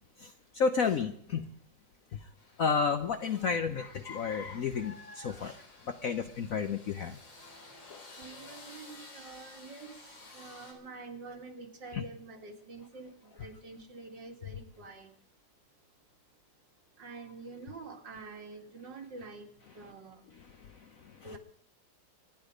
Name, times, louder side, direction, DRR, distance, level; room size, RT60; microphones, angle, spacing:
voice 1, 0.2-1.5 2.1-2.3 2.6-7.2 7.9-8.0 11.9-12.0 20.3-21.4, left 5 dB, 60° left, 7 dB, 1.0 m, -32 dB
sound 1, 2.4-10.7, left 2 dB, 85° left, 4.0 m, -53 dB
voice 2, 8.2-9.9 10.3-13.1 13.4-15.1 17.0-19.5 19.8-20.2 21.2-21.4, right 3 dB, 75° right, 2 dB, 2.8 m, -46 dB
25.0 x 10.0 x 5.1 m, 0.65 s
omnidirectional pair, 2.0 m